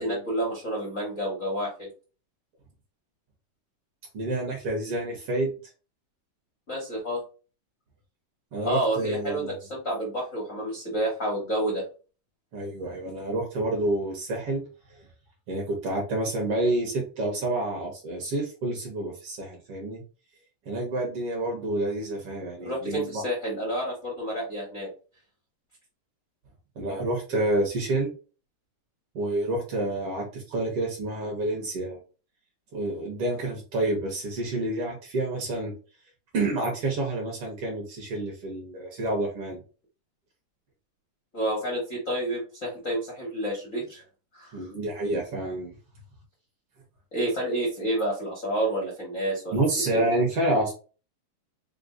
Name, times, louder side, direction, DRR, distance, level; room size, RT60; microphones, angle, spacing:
voice 1, 0.0-1.9 6.7-7.2 8.6-11.8 22.6-24.9 41.3-44.0 44.3-44.7 47.1-49.6 49.9-50.0, right 1 dB, 85° left, -4 dB, 0.7 m, -29 dB
voice 2, 4.1-5.5 8.5-9.6 12.5-14.6 15.5-20.0 20.6-23.2 26.7-28.1 29.1-32.0 32.7-35.7 36.3-39.6 44.5-45.7 49.5-50.7, right 2 dB, 60° right, 0 dB, 1.7 m, -28 dB
5.2 x 2.1 x 3.7 m, 0.35 s
omnidirectional pair, 3.7 m